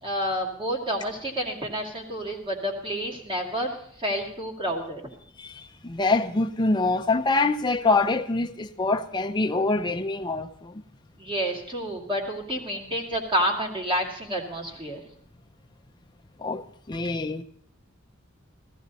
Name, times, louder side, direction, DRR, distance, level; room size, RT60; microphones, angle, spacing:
voice 1, 0.0-5.0 11.2-15.0, equal, 25° right, 2.2 m, -29 dB
voice 2, 5.4-10.7 16.4-17.4, left 3 dB, 20° left, 0.5 m, -25 dB
15.0 x 14.5 x 4.1 m
head